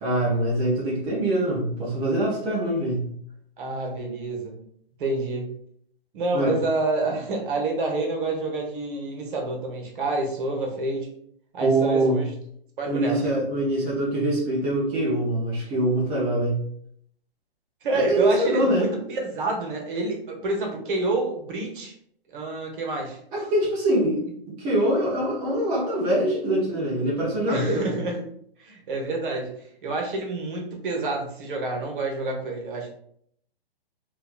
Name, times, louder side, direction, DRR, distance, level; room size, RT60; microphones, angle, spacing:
voice 1, 0.0-3.0 6.3-6.5 11.6-12.2 12.9-16.6 17.9-18.9 23.3-24.2 24.5-27.8, right 1 dB, 10° right, -7 dB, 0.3 m, -24 dB
voice 2, 3.6-4.6 5.0-5.5 6.1-11.1 11.5-12.3 12.8-13.2 17.8-21.9 22.3-23.2 27.5-28.2 28.6-29.6 29.8-32.9, right 2 dB, 55° right, 1 dB, 0.9 m, -28 dB
3.0 x 2.3 x 2.3 m, 0.67 s
hypercardioid pair, 135°, 30 cm